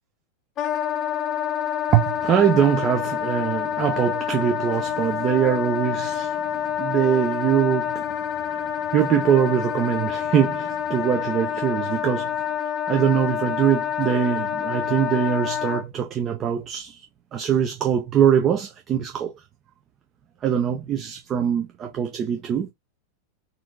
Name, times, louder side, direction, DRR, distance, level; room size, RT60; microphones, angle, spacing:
Wind instrument woodwind instrument, 0.6-15.8, left 9 dB, 30° left, 0.7 m, -27 dB
voice 1, 1.9-8.1 8.5-12.3 12.9-17.0 17.3-19.3 20.4-22.7, right 9 dB, 30° right, 0.6 m, -22 dB
4.3 x 2.6 x 2.6 m
figure-of-eight pair, 90°, 0 cm